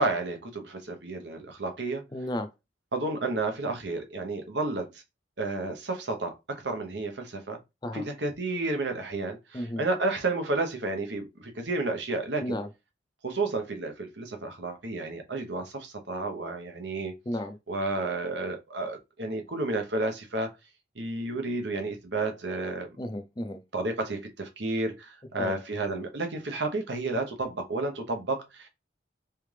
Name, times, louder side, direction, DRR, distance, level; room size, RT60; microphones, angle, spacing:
voice 1, 0.0-2.1 2.9-5.0 5.4-7.6 7.9-12.6 13.2-17.2 17.7-20.5 21.0-22.9 23.7-28.7, right 2 dB, 65° right, 1.0 m, -31 dB
voice 2, 2.1-2.5 7.8-8.0 9.5-9.8 12.4-12.7 17.3-17.6 23.0-23.6 25.4-25.6, left 1 dB, 25° left, 0.5 m, -33 dB
3.6 x 3.4 x 3.3 m
head